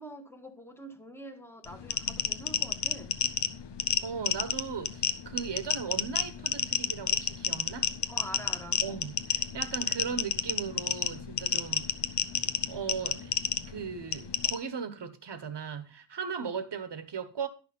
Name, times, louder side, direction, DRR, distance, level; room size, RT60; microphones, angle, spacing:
voice 1, 0.0-3.2 8.1-8.8, equal, 5° left, 1.5 m, -45 dB
sound 1, 1.6-14.5, left 7 dB, 65° left, 0.9 m, -30 dB
voice 2, 4.0-7.9 8.8-11.9 12.7-13.3 13.7-17.5, right 6 dB, 65° right, 1.3 m, -37 dB
11.5 x 6.2 x 5.3 m
wide cardioid pair, 130°, 44 cm